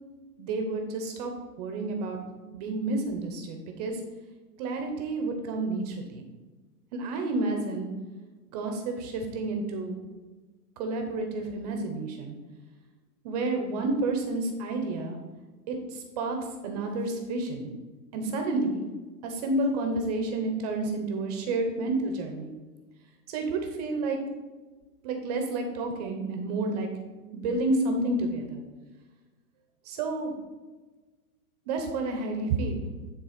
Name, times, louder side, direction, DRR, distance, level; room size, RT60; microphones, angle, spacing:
voice 1, 0.4-2.2 2.5-4.0 4.6-6.2 6.9-7.9 8.5-10.0 10.8-12.4 13.2-15.2 15.7-16.4 16.6-17.7 18.1-18.8 19.2-22.5 23.3-24.2 25.0-26.9 27.3-28.6 29.8-30.3 31.7-32.8, right 2 dB, 25° right, 4 dB, 0.7 m, -30 dB
9.8 x 3.5 x 5.0 m, 1.3 s
hypercardioid pair, 150°, 47 cm